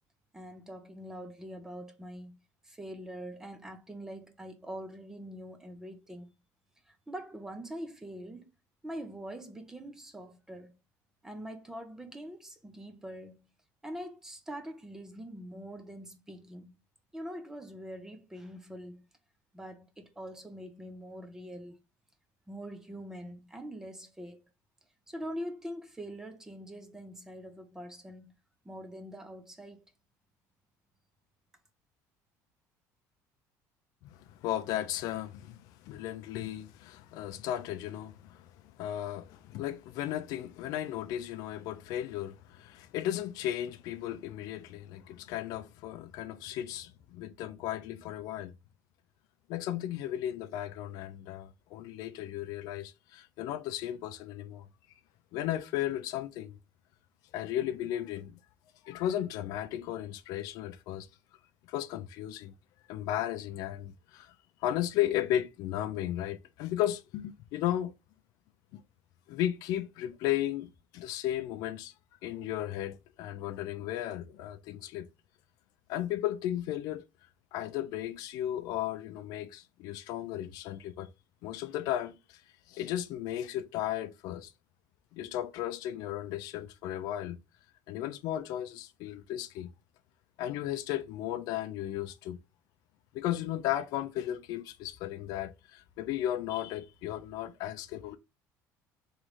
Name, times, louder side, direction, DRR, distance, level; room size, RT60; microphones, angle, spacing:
voice 1, 0.3-2.4 2.6-6.3 6.9-8.5 8.8-10.7 11.2-13.4 13.8-16.8 17.1-19.0 19.5-21.8 22.5-24.4 25.1-28.3 28.6-29.8, equal, 5° right, 0.5 m, -43 dB
voice 2, 34.4-35.6 35.8-38.5 38.8-48.5 49.5-54.7 55.3-56.6 57.3-58.4 58.8-61.1 61.7-62.5 62.9-64.3 64.6-67.9 68.7-68.8 69.3-71.9 72.2-75.1 75.9-77.0 77.5-81.1 81.4-82.4 82.7-84.5 85.1-87.4 87.9-89.7 90.4-92.4 93.1-98.2, left 12 dB, 60° left, 0.5 m, -35 dB
3.7 x 3.1 x 3.1 m
cardioid pair, 175°, 7 cm